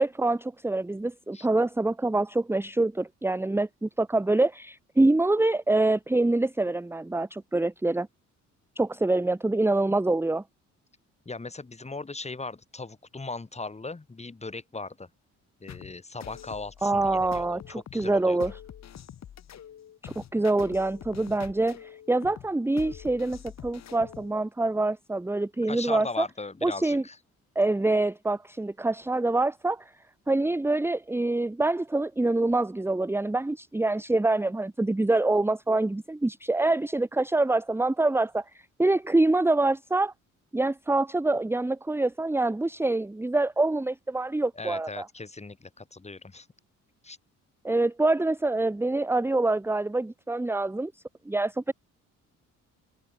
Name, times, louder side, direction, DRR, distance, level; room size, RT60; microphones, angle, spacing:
voice 1, 0.0-8.1 8.8-10.4 16.8-18.5 20.0-26.3 26.6-27.0 27.5-29.9 30.3-38.4 38.8-40.1 40.5-45.0 47.6-50.9 51.3-51.7, right 2 dB, 10° right, 0.9 m, -25 dB
voice 2, 11.2-15.1 15.6-18.5 25.7-27.2 44.5-46.5 47.0-47.2, left 3 dB, 20° left, 4.5 m, -38 dB
sound 1, 15.7-24.3, left 9 dB, 60° left, 4.6 m, -45 dB
cardioid pair, 90°, 30 cm